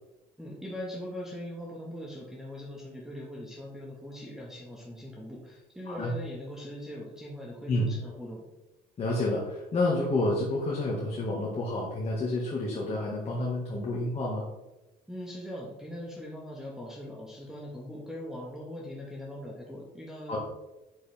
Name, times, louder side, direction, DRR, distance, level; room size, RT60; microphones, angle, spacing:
voice 1, 0.4-8.4 15.1-20.4, left 1 dB, 5° right, -4 dB, 1.7 m, -41 dB
voice 2, 5.9-6.2 7.7-7.9 9.0-14.5 20.3-20.4, left 2 dB, 40° left, -3 dB, 1.8 m, -29 dB
7.9 x 7.0 x 3.5 m, 1.0 s
cardioid pair, 110°, 17 cm